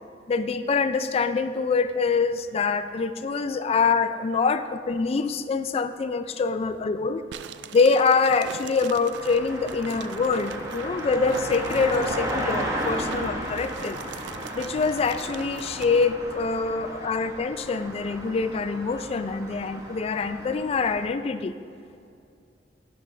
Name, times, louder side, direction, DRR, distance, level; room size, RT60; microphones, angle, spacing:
voice 1, 0.3-7.2 7.7-14.0 14.5-21.5, left 4 dB, 35° left, 11 dB, 0.3 m, -25 dB
sound 1, 7.3-16.1, right 7 dB, 70° right, 0.3 m, -42 dB
sound 2, 9.1-21.1, right 1 dB, 20° right, 0.9 m, -34 dB
10.5 x 6.4 x 3.2 m, 2.4 s
head